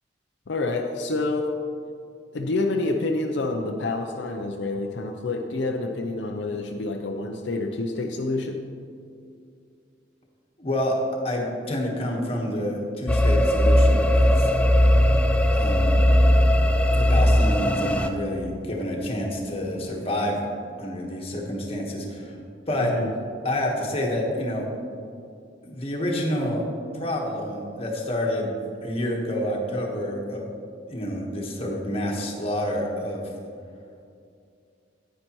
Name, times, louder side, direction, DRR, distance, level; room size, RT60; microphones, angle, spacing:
voice 1, 0.5-1.6 2.3-8.6 22.8-23.1, left 2 dB, 75° left, 3 dB, 0.5 m, -28 dB
voice 2, 10.6-10.9 11.2-14.5 15.5-15.9 17.0-20.5 20.8-22.4 22.7-22.9 23.4-24.7 25.6-26.6 26.9-28.5 28.8-30.5 30.9-33.2, left 1 dB, 30° left, -1 dB, 1.3 m, -28 dB
sound 1, 13.1-18.1, left 1 dB, 5° left, 0.4 m, -18 dB
9.7 x 9.4 x 3.0 m, 2.4 s
head